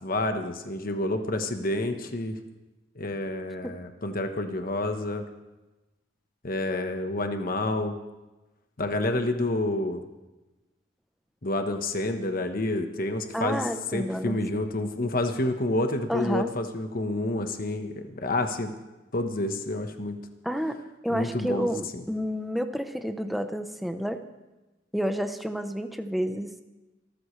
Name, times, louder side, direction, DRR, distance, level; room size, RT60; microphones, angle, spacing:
voice 1, 0.0-2.4 3.0-5.3 6.4-8.0 8.8-10.0 11.4-18.7 19.1-20.2 21.1-22.0, left 2 dB, 50° left, 6 dB, 1.3 m, -29 dB
voice 2, 13.3-14.4 16.1-16.5 20.4-20.8 21.0-24.2 24.9-26.5, equal, ahead, 7 dB, 0.8 m, -30 dB
26.0 x 13.5 x 3.3 m, 1.1 s
head